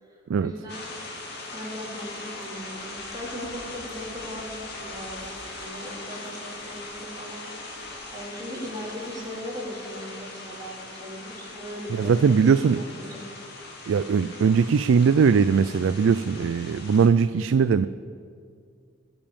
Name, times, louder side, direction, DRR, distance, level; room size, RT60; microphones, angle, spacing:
voice 1, 0.0-0.8 1.5-7.5 8.1-13.3, equal, 20° right, -6 dB, 4.0 m, -38 dB
sound 1, 0.7-17.1, left 2 dB, 60° left, 2.5 m, -40 dB
voice 2, 12.0-12.8 13.9-17.9, right 6 dB, 90° right, 12 dB, 0.4 m, -20 dB
20.5 x 7.1 x 7.1 m, 2.3 s
head